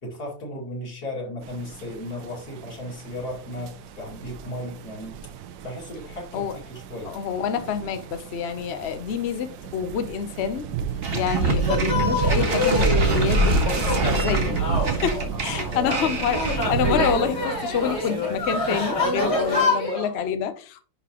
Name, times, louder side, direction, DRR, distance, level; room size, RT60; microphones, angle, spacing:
voice 1, 0.0-5.2 5.6-7.1 15.7-15.9, left 1 dB, 50° left, 2.9 m, -35 dB
sound 1, 1.4-19.6, right 7 dB, 75° right, 1.4 m, -32 dB
voice 2, 7.0-10.6 11.1-13.8 14.1-14.6 14.8-20.8, left 7 dB, 80° left, 0.5 m, -27 dB
sound 2, 11.0-17.3, right 1 dB, 35° right, 1.2 m, -25 dB
sound 3, 11.6-20.1, left 2 dB, 65° left, 4.8 m, -27 dB
10.5 x 3.9 x 2.9 m
omnidirectional pair, 2.1 m